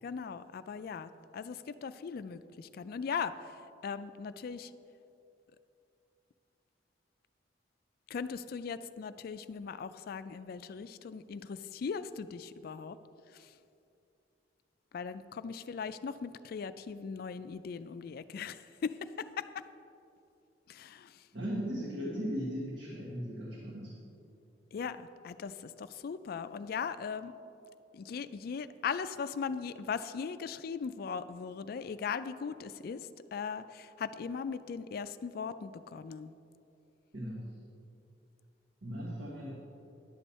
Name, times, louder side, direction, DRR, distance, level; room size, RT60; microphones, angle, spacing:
voice 1, 0.0-4.7 8.1-13.0 13.3-13.6 14.9-19.7 20.7-21.3 24.7-27.3 27.9-36.3, left 6 dB, 55° left, 13 dB, 0.3 m, -39 dB
voice 2, 21.3-24.0 37.1-37.4 38.8-39.5, equal, 85° right, -5 dB, 1.3 m, -37 dB
10.5 x 7.1 x 4.2 m, 2.7 s
head